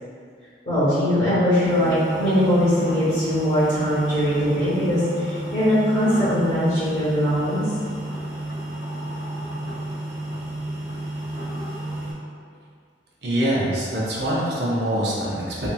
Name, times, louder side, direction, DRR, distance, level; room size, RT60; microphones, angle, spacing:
voice 1, 0.6-5.0 5.3-7.6, equal, 35° left, -15 dB, 0.9 m, -21 dB
sound 1, 1.6-12.1, right 1 dB, 50° right, 1.3 m, -31 dB
voice 2, 13.2-15.7, right 1 dB, 70° right, -5 dB, 0.6 m, -24 dB
2.9 x 2.5 x 2.2 m, 2.2 s
head